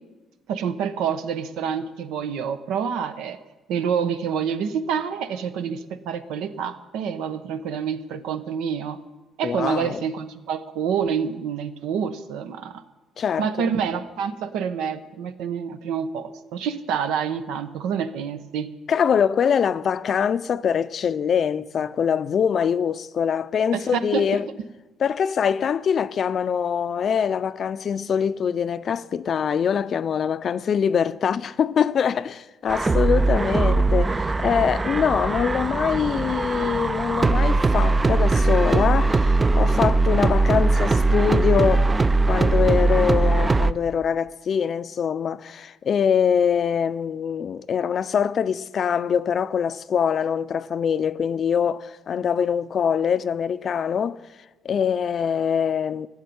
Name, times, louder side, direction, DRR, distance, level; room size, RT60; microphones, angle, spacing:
voice 1, 0.5-3.4 3.7-9.0 9.4-12.8 13.4-18.7 23.7-24.3, right 7 dB, 85° right, 1.0 m, -27 dB
voice 2, 9.4-10.0 13.2-13.7 18.9-24.5 25.0-41.9 42.3-54.2 54.6-56.1, left 7 dB, 45° left, 0.5 m, -23 dB
sound 1, 32.7-43.7, right 3 dB, 20° right, 0.4 m, -20 dB
14.0 x 7.3 x 9.5 m
cardioid pair, 110°, 0 cm